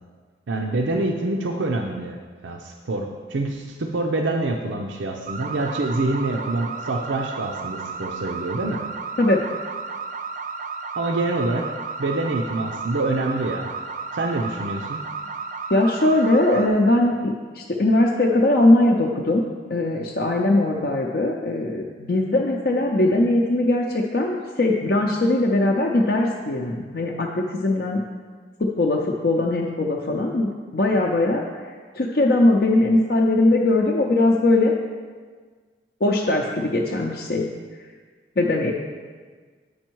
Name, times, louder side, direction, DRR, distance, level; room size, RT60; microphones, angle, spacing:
voice 1, 0.5-2.2 2.4-8.8 11.0-11.7 12.0-13.7 14.1-15.0, right 2 dB, 90° right, 2 dB, 0.6 m, -26 dB
sound 1, 5.3-16.7, right 4 dB, 45° right, 0.4 m, -33 dB
voice 2, 15.7-19.4 19.7-28.0 28.6-31.4 31.9-34.7 36.0-37.5 38.4-38.7, left 2 dB, 55° left, -1 dB, 0.5 m, -20 dB
8.7 x 5.3 x 4.6 m, 1.5 s
head